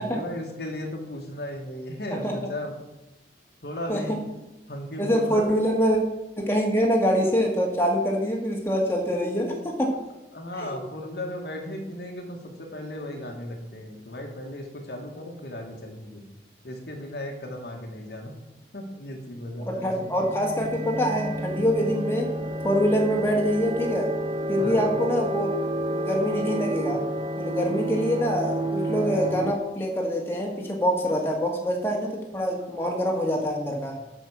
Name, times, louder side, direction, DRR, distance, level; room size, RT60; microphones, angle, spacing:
voice 1, 0.0-2.7 3.6-4.2 4.7-5.5 10.3-16.2 16.6-18.3 18.7-20.3 24.5-24.9, left 1 dB, 65° left, 1 dB, 1.7 m, -36 dB
voice 2, 3.9-4.2 5.0-6.0 6.4-9.9 10.6-10.7 19.7-22.3 22.6-24.1 24.5-25.5 25.9-27.0 27.4-33.9, equal, 15° left, -1 dB, 1.7 m, -25 dB
sound 1, 20.0-29.5, right 1 dB, 30° right, 0.5 m, -30 dB
8.1 x 6.2 x 7.2 m, 1.0 s
head